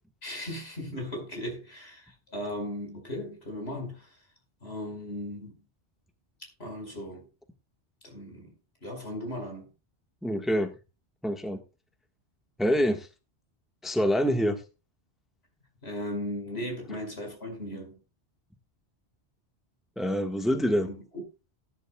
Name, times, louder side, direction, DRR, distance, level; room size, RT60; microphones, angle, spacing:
voice 1, 0.2-4.2 4.6-5.6 6.4-7.3 8.0-8.5 8.8-9.7 15.8-18.0 20.8-21.0, left 1 dB, 70° left, 5.6 m, -37 dB
voice 2, 10.2-10.7 11.2-11.6 12.6-13.1 13.8-14.6 20.0-20.9, equal, ahead, 1.5 m, -26 dB
18.0 x 11.0 x 2.3 m
omnidirectional pair, 1.1 m